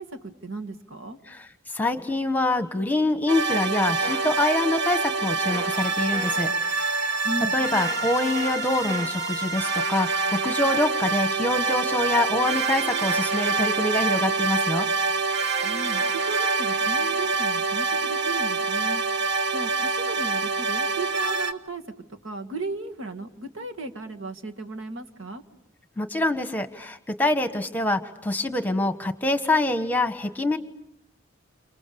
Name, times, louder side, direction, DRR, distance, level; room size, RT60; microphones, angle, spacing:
voice 1, 0.0-1.2 7.2-7.6 15.6-19.0 19.5-21.8 22.2-25.4, right 3 dB, 70° right, 5 dB, 2.1 m, -35 dB
voice 2, 1.3-7.3 7.5-14.9 26.0-30.6, left 2 dB, 10° left, 8 dB, 1.4 m, -25 dB
sound 1, 3.3-21.5, right 4 dB, 55° right, 1.7 m, -26 dB
sound 2, 4.0-4.3 5.5-5.7 6.1-6.4 7.8-8.0 8.3-8.5 8.9-9.1, equal, 35° right, 4.9 m, -35 dB
29.5 x 28.5 x 7.0 m, 0.76 s
head